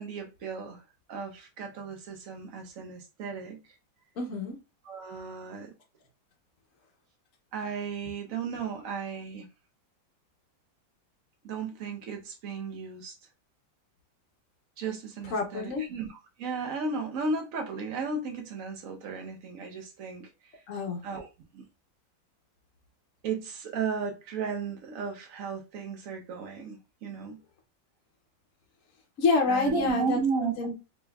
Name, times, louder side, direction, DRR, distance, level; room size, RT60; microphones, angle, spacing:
voice 1, 0.0-3.6 4.8-5.7 7.5-9.5 11.4-13.2 14.8-20.6 21.0-21.3 21.5-21.6 23.2-27.4 29.5-30.5, right 5 dB, 60° right, 0.9 m, -34 dB
voice 2, 4.2-4.6 15.3-15.9 20.7-21.0 29.2-30.7, left 3 dB, 60° left, 0.8 m, -28 dB
4.1 x 2.9 x 2.3 m
omnidirectional pair, 2.1 m